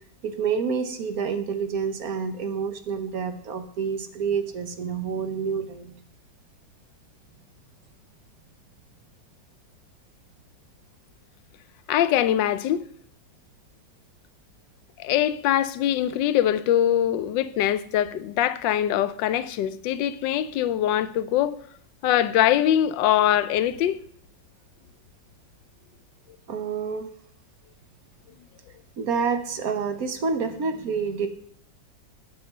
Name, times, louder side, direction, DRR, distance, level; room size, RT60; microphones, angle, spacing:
voice 1, 0.2-5.9 26.5-27.1 29.0-31.3, right 5 dB, 60° right, 1.3 m, -28 dB
voice 2, 11.9-12.9 15.0-21.6 22.0-24.0, left 11 dB, 90° left, 1.3 m, -23 dB
9.3 x 6.8 x 6.5 m
omnidirectional pair, 1.9 m